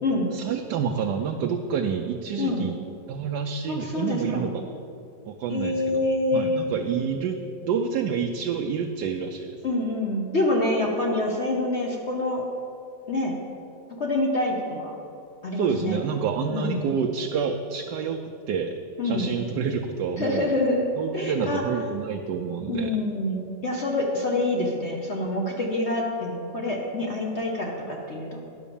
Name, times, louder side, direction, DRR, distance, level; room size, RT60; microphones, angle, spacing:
voice 1, 0.3-2.8 3.1-4.7 5.3-6.0 6.3-9.6 15.5-18.8 19.0-20.5 21.0-22.9, right 6 dB, 75° right, 3 dB, 1.1 m, -28 dB
voice 2, 3.7-4.5 5.5-6.7 9.6-12.4 13.1-13.4 14.0-14.9 15.4-16.0 16.5-16.8 19.0-19.4 20.2-20.8 21.1-21.6 22.7-28.4, left 2 dB, 45° left, -1 dB, 1.0 m, -26 dB
11.0 x 5.7 x 7.0 m, 2.6 s
omnidirectional pair, 2.0 m